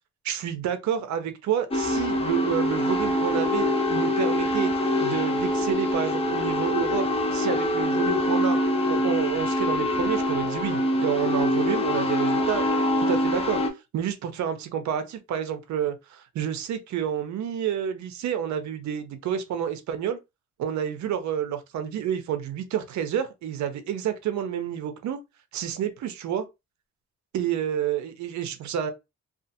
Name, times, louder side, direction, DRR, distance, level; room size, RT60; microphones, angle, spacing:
voice 1, 0.2-4.7 5.0-8.6 8.9-13.6 13.9-20.2 20.6-25.2 25.5-26.5 27.3-28.9, right 9 dB, 70° right, 0.7 m, -29 dB
sound 1, 1.7-13.7, left 1 dB, 20° left, 0.6 m, -24 dB
2.4 x 2.4 x 2.7 m
cardioid pair, 90°, 30 cm